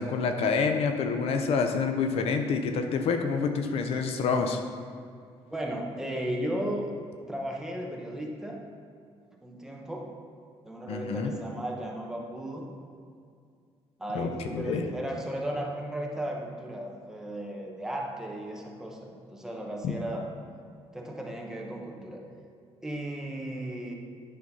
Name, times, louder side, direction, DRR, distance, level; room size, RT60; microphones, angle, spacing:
voice 1, 0.0-4.6 10.9-11.3 14.1-14.9 19.8-20.0, left 5 dB, 65° left, 6 dB, 0.6 m, -27 dB
voice 2, 5.5-6.9 7.3-8.6 9.4-10.1 10.6-12.7 14.0-20.3 20.9-22.2 22.8-23.9, right 1 dB, 5° right, -1 dB, 0.9 m, -35 dB
9.5 x 4.0 x 5.5 m, 2.3 s
cardioid pair, 145°, 11 cm